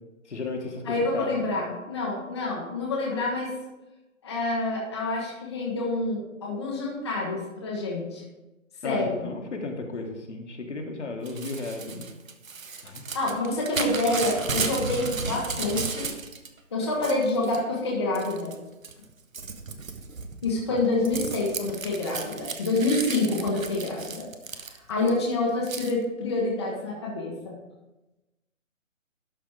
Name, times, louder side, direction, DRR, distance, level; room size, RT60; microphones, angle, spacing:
voice 1, 0.3-1.3 8.8-12.1 12.8-13.0 20.7-21.1, left 3 dB, 60° left, 3 dB, 1.5 m, -34 dB
voice 2, 0.8-3.5 4.2-8.2 8.8-9.2 13.1-16.1 16.7-18.5 20.4-24.3 24.5-27.5, left 2 dB, 20° left, -3 dB, 0.9 m, -27 dB
Crumpling crinkling / Tearing, 11.2-16.5 16.8-17.6 18.1-18.5 18.8-25.1 25.7-25.9, right 4 dB, 80° right, 1.1 m, -34 dB
12.0 x 4.0 x 4.8 m, 1.1 s
figure-of-eight pair, 160°, 40 cm